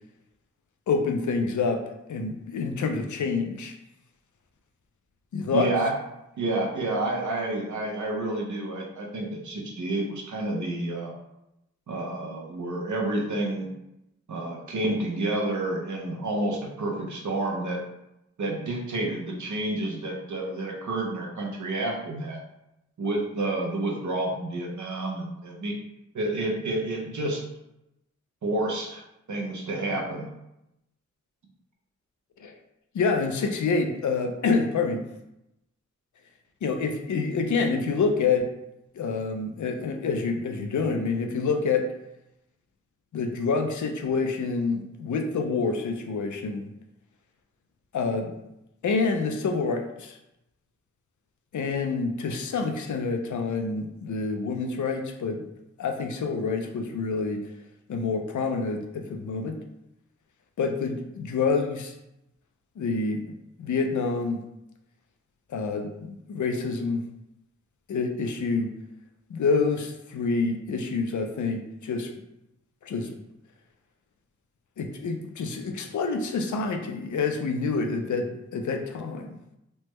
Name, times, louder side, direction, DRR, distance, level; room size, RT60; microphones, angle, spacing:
voice 1, 0.9-1.8 2.1-3.8 5.3-5.7 32.4-32.5 32.9-35.1 36.6-38.5 38.9-41.9 43.1-46.7 47.9-48.4 48.8-50.2 51.5-55.4 55.8-57.4 57.9-59.6 60.6-61.9 62.8-64.4 65.5-67.1 67.9-68.7 69.3-72.1 72.8-73.1 74.8-79.4, left 4 dB, 85° left, 5 dB, 0.4 m, -27 dB
voice 2, 5.5-5.9 6.4-11.1 11.9-13.7 14.3-17.8 18.4-22.4 23.0-25.8 26.1-27.4 28.4-29.0 29.3-30.3, right 2 dB, 80° right, 0 dB, 0.7 m, -29 dB
3.3 x 2.1 x 3.0 m, 0.87 s
wide cardioid pair, 90°, 29 cm